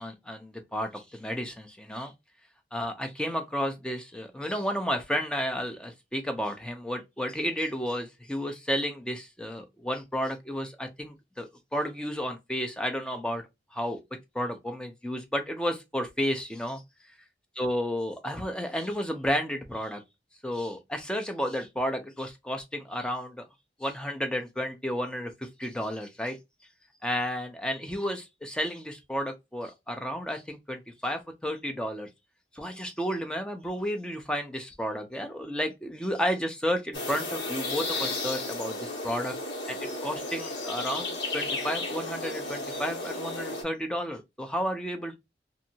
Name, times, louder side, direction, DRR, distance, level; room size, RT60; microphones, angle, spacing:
voice 1, 0.0-2.1 2.7-13.4 13.7-14.0 14.3-16.8 17.6-20.0 20.4-23.5 23.8-26.4 27.0-32.1 32.5-39.4 39.7-45.2, equal, 5° left, 0.5 m, -32 dB
sound 1, 36.9-43.6, left 2 dB, 85° left, 1.3 m, -33 dB
2.6 x 2.5 x 2.8 m
head